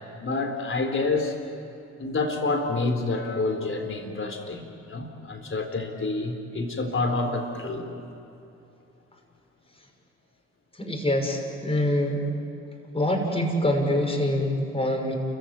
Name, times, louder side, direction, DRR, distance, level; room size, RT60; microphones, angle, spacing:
voice 1, 0.2-1.4 2.0-4.6 4.9-8.0, left 3 dB, 40° left, 4 dB, 4.0 m, -28 dB
voice 2, 10.8-12.2 12.9-15.2, left 1 dB, 15° left, 2 dB, 6.2 m, -25 dB
29.5 x 15.5 x 9.5 m, 2.8 s
hypercardioid pair, 55°, 34 cm